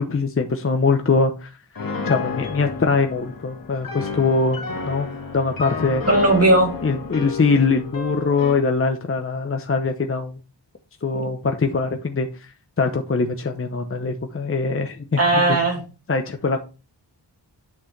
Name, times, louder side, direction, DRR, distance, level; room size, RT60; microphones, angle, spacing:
voice 1, 0.0-1.5 2.1-4.6 4.9-6.0 6.8-10.3 11.0-15.7 16.1-16.6, left 4 dB, 30° left, 5 dB, 0.8 m, -22 dB
Piano, 1.8-8.7, left 4 dB, 55° left, 1.8 m, -31 dB
voice 2, 6.1-6.7 11.1-11.3 15.2-15.8, right 2 dB, 35° right, 2 dB, 2.8 m, -17 dB
8.5 x 6.2 x 3.3 m, 0.31 s
wide cardioid pair, 100°, 42 cm